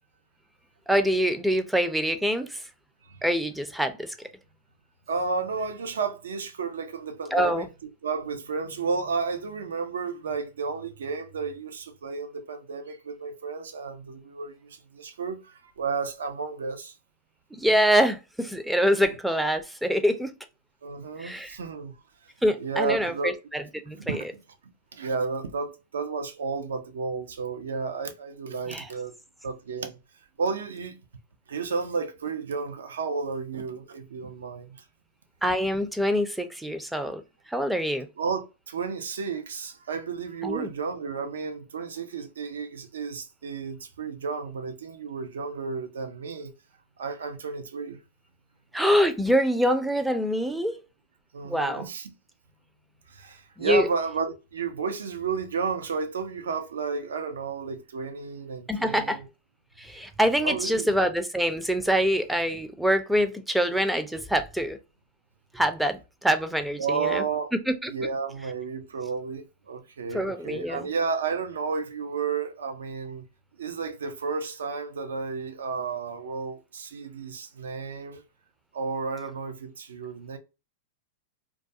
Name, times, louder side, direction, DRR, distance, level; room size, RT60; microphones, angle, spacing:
voice 1, 0.9-2.6 3.2-4.1 7.3-7.7 17.5-20.3 21.2-21.6 22.4-24.2 28.7-28.9 35.4-37.2 37.5-38.1 40.4-40.7 48.7-50.8 51.4-51.9 53.6-53.9 58.7-59.2 59.8-64.8 65.5-67.2 67.7-67.9 70.1-70.9, equal, 5° right, 0.4 m, -25 dB
voice 2, 5.1-7.7 8.0-16.9 20.8-21.9 22.6-23.3 23.9-24.4 24.9-29.1 29.4-30.0 30.4-31.0 31.5-34.8 38.2-46.5 47.0-48.0 51.3-52.1 53.1-59.3 60.4-60.9 66.8-67.5 67.9-73.2 73.6-78.2 78.7-80.4, right 5 dB, 85° right, 0.5 m, -32 dB
2.3 x 2.2 x 2.6 m
hypercardioid pair, 115°, 0 cm